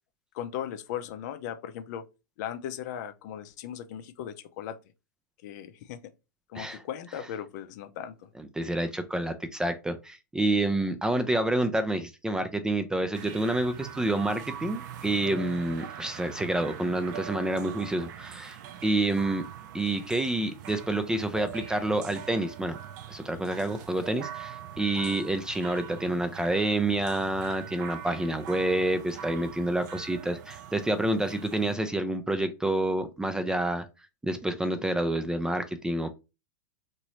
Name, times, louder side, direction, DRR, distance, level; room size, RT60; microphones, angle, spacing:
voice 1, 0.3-2.1 2.4-4.8 5.4-6.0 6.5-8.3, left 10 dB, 55° left, 0.5 m, -37 dB
voice 2, 8.6-18.6 18.8-19.4 19.7-22.8 23.1-33.8 34.2-36.1, right 1 dB, 5° right, 0.3 m, -28 dB
sound 1, 13.1-31.7, right 10 dB, 60° right, 0.5 m, -42 dB
3.0 x 2.6 x 3.0 m
hypercardioid pair, 115°, 11 cm